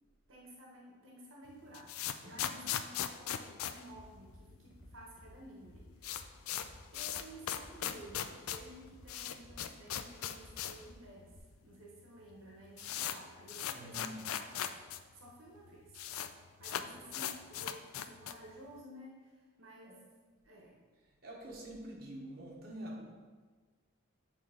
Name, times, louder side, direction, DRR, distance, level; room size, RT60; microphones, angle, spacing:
voice 1, 0.3-1.9 2.2-6.4 6.9-11.3 11.6-15.9 16.6-20.0 20.4-20.8, right 1 dB, 70° right, -2 dB, 1.0 m, -54 dB
sound 1, 1.5-4.7 5.0-5.1 5.3-5.4 5.7-10.9 11.2-11.3 12.0-12.1 12.3-15.0 15.3-15.4 15.6-16.3 16.6-18.5, left 10 dB, 85° left, 0.4 m, -39 dB
voice 2, 2.2-2.9 13.6-14.5 16.8-17.1 19.8-20.0 21.0-23.0, right 1 dB, 45° right, -4 dB, 1.1 m, -47 dB
Bass drum, 3.9-4.4 4.7-5.3 5.6-6.3 6.6-7.2 7.5-8.1 8.5-9.1 9.4-10.0 10.3-10.9 11.3-11.4, equal, ahead, 0.9 m, -56 dB
7.6 x 3.3 x 4.8 m, 1.4 s
head